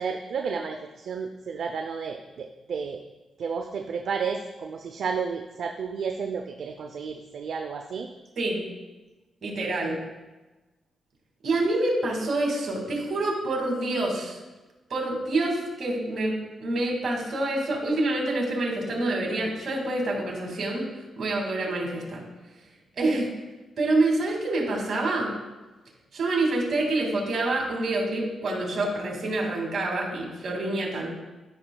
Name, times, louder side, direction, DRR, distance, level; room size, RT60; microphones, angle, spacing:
voice 1, 0.0-3.0 3.4-8.1, right 5 dB, 65° right, 3 dB, 0.5 m, -32 dB
voice 2, 9.4-10.0 11.4-14.4 14.9-20.9 21.2-22.2 23.0-23.3 23.8-25.3 26.1-31.1, right 2 dB, 50° right, 0 dB, 2.1 m, -27 dB
13.0 x 5.6 x 2.3 m, 1.1 s
cardioid pair, 100°, 0 cm